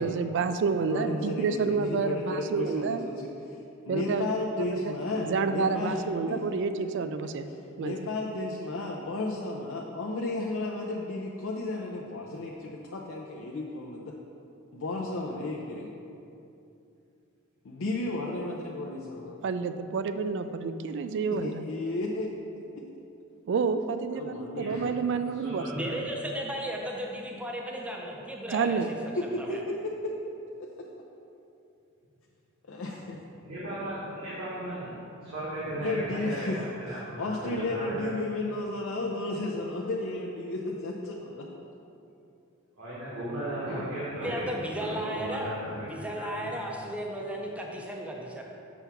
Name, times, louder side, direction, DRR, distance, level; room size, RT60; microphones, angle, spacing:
voice 1, 0.0-3.0 3.9-4.3 4.6-5.0 5.2-7.5 7.8-8.0 19.4-21.6 23.5-25.6 28.5-28.9, right 5 dB, 55° right, 10 dB, 0.3 m, -29 dB
voice 2, 0.9-3.6 3.9-6.4 7.5-14.2 14.7-15.9 17.6-19.4 21.3-22.3 22.7-22.9 24.1-24.9 25.2-25.4 29.2-30.1 30.6-30.9 32.7-33.2 35.8-36.6 36.9-41.5, left 2 dB, 65° left, -2 dB, 0.5 m, -33 dB
voice 3, 24.5-24.9 25.3-25.9 33.4-34.9 35.2-38.1 42.8-44.5 44.7-45.9 46.2-46.6, right 1 dB, 70° right, -9 dB, 1.4 m, -36 dB
voice 4, 25.7-28.8 29.4-29.6 44.2-45.5 45.9-48.5, equal, 5° right, -1 dB, 0.5 m, -35 dB
7.1 x 3.4 x 5.9 m, 2.7 s
head